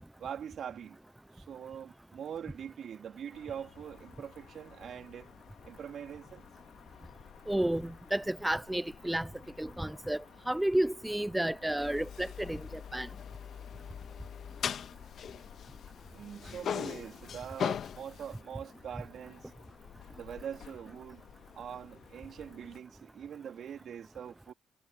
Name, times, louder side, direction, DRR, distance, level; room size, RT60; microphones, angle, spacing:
voice 1, 0.2-1.0 1.3-5.3 5.6-6.5 16.1-19.5 20.1-21.2 21.5-24.5, right 8 dB, 65° right, 3.3 m, -43 dB
sound 1, 3.3-22.8, left 11 dB, 80° left, 4.1 m, -56 dB
voice 2, 7.5-9.3 9.6-13.1, right 1 dB, 5° right, 0.7 m, -31 dB
sound 2, 11.8-16.0 16.3-18.4, left 8 dB, 60° left, 2.1 m, -39 dB
cardioid pair, 90°, 0 cm